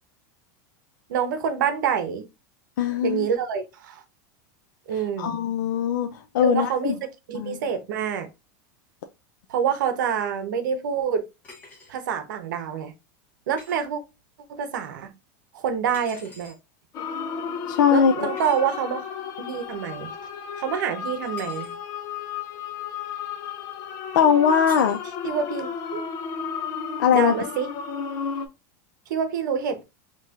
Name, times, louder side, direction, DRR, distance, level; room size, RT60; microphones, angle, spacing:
voice 1, 1.1-2.3 3.0-4.0 4.9-5.4 6.4-6.9 7.3-8.3 9.5-11.2 11.9-12.9 13.5-14.0 14.5-15.1 15.5-16.5 17.9-19.0 19.4-20.1 20.6-21.8 25.2-26.0 27.1-27.7 29.1-29.8, right 7 dB, 85° right, 0.8 m, -27 dB
voice 2, 2.8-3.3 5.2-6.9 7.3-7.6 17.7-18.3 24.1-25.0 27.0-27.3, left 7 dB, 85° left, 0.4 m, -21 dB
sound 1, 11.4-11.9 13.6-13.8 15.9-16.6 18.4-18.6 21.2-21.7 24.7-25.0, left 2 dB, 15° left, 1.4 m, -45 dB
sound 2, 16.9-28.5, left 7 dB, 35° left, 0.5 m, -33 dB
4.2 x 3.0 x 2.4 m
supercardioid pair, 165°, 10 cm